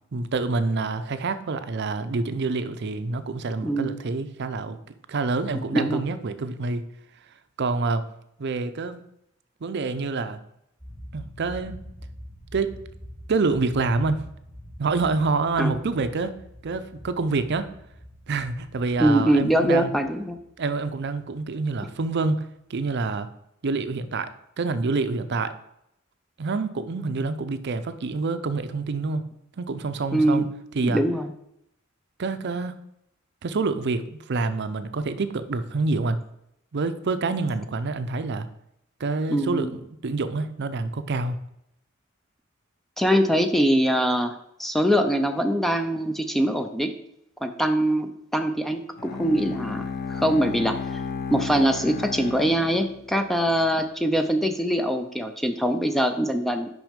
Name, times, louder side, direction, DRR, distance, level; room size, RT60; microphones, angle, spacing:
voice 1, 0.1-4.8 5.1-6.8 7.6-8.0 8.4-9.0 9.6-10.4 11.1-11.8 12.5-12.7 13.3-14.2 14.8-16.3 16.6-17.7 18.3-19.9 20.6-23.3 23.6-24.3 24.6-25.5 26.4-29.2 29.6-30.5 30.7-31.0 32.2-32.7 33.4-36.2 36.7-38.5 39.0-41.4, right 3 dB, 55° right, 11 dB, 0.5 m, -27 dB
voice 2, 3.6-4.0 5.7-6.0 15.6-15.7 19.0-20.4 30.1-30.5 30.8-31.3 39.3-39.7 43.0-46.9 47.4-51.0 51.3-56.7, right 1 dB, ahead, 7 dB, 0.4 m, -23 dB
sound 1, 10.8-22.1, equal, 25° left, 2.3 m, -45 dB
Bowed string instrument, 49.0-53.4, left 5 dB, 50° left, 0.6 m, -33 dB
6.2 x 5.4 x 5.1 m, 0.79 s
head